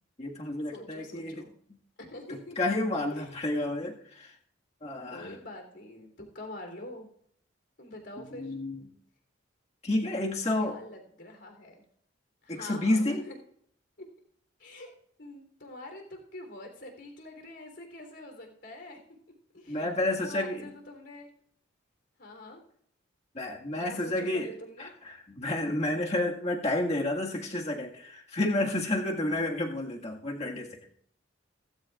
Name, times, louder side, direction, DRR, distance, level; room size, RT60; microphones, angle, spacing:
voice 1, 0.2-1.5 2.3-4.3 4.8-5.4 8.2-8.8 9.8-10.8 12.5-13.2 19.7-20.7 23.3-24.5 24.8-30.8, left 1 dB, 30° left, 0 dB, 1.8 m, -30 dB
voice 2, 0.7-1.5 2.0-2.6 3.1-3.4 5.1-7.1 7.8-8.5 10.6-11.8 12.4-13.4 14.6-14.9 15.2-19.0 19.5-21.3 22.2-22.6 23.8-24.9, left 1 dB, 60° left, 3 dB, 3.5 m, -45 dB
17.0 x 15.5 x 2.5 m, 0.65 s
head